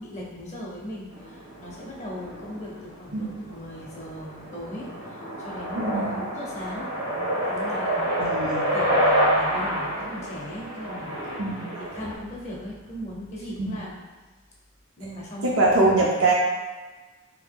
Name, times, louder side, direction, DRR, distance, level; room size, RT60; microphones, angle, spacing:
voice 1, 0.0-6.9 7.4-8.2 8.7-11.4 11.8-14.0 15.0-15.9, equal, 35° left, -4 dB, 0.5 m, -38 dB
sound 1, 1.1-12.1, equal, 90° right, 1.5 m, -28 dB
voice 2, 5.8-6.2 8.2-8.7 11.4-11.7 13.6-13.8 15.4-16.3, right 2 dB, 70° right, -4 dB, 0.5 m, -23 dB
2.7 x 2.4 x 3.5 m, 1.3 s
head